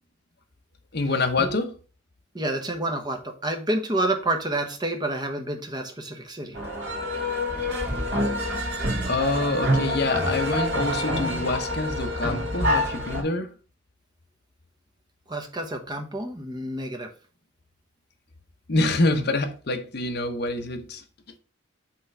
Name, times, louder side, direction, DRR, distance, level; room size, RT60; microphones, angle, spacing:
voice 1, 0.9-1.8 8.4-8.8 9.1-13.6 18.7-21.0, left 2 dB, 50° left, 0.8 m, -26 dB
voice 2, 2.3-6.6 15.3-17.1, right 1 dB, 20° right, 0.9 m, -29 dB
sound 1, 6.5-13.2, left 1 dB, 55° right, 2.2 m, -26 dB
5.8 x 3.2 x 5.4 m
head